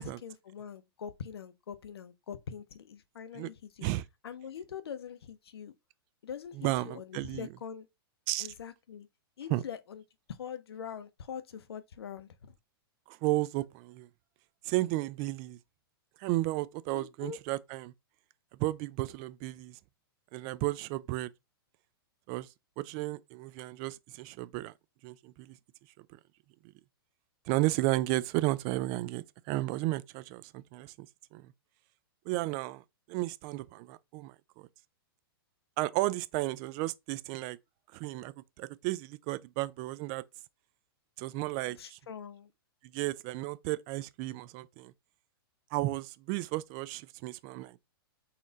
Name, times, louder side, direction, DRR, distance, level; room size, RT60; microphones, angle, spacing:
voice 1, 0.0-3.9 4.2-5.7 6.2-7.9 8.4-9.1 9.4-10.0 10.3-12.5 16.9-17.4 41.6-42.5, left 7 dB, 85° left, 0.7 m, -43 dB
voice 2, 6.6-7.5 8.3-8.5 9.5-9.6 13.1-14.1 14.7-15.6 16.2-17.9 18.6-19.8 20.3-21.3 22.3-22.5 22.8-24.7 25.0-25.6 27.5-31.1 31.3-31.4 32.3-32.8 33.1-34.7 35.8-37.6 37.9-40.2 41.2-42.0 42.9-44.9 45.7-47.8, right 18 dB, 35° right, 0.4 m, -33 dB
4.2 x 2.5 x 3.8 m
hypercardioid pair, 130°, 13 cm